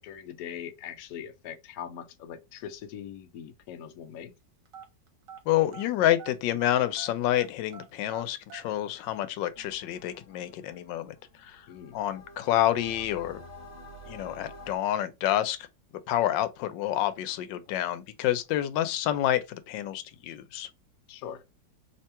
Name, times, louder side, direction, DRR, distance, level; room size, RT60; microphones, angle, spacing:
voice 1, 0.0-4.3 11.7-12.0 21.1-21.4, left 9 dB, 70° left, 0.9 m, -41 dB
sound 1, 4.7-6.4 6.6-8.7, right 6 dB, 55° right, 1.2 m, -46 dB
voice 2, 5.5-11.2 11.4-11.6 11.9-13.4 14.1-15.6 16.1-20.7, left 12 dB, 85° left, 1.3 m, -28 dB
sound 2, 9.5-14.8, left 1 dB, 45° left, 1.2 m, -49 dB
3.1 x 2.9 x 3.2 m
omnidirectional pair, 1.9 m